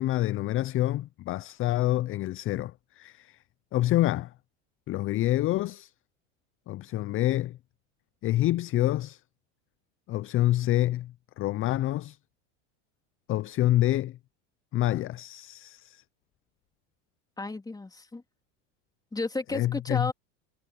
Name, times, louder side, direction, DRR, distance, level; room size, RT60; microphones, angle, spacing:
voice 1, 0.0-3.4 3.7-4.3 4.9-5.9 6.7-7.6 8.2-9.2 10.1-12.2 13.3-14.2 14.7-16.0 19.5-20.1, left 15 dB, 35° left, 0.6 m, -27 dB
voice 2, 17.4-18.2 19.1-20.1, left 3 dB, 10° left, 3.0 m, -32 dB
supercardioid pair, 110°, 38 cm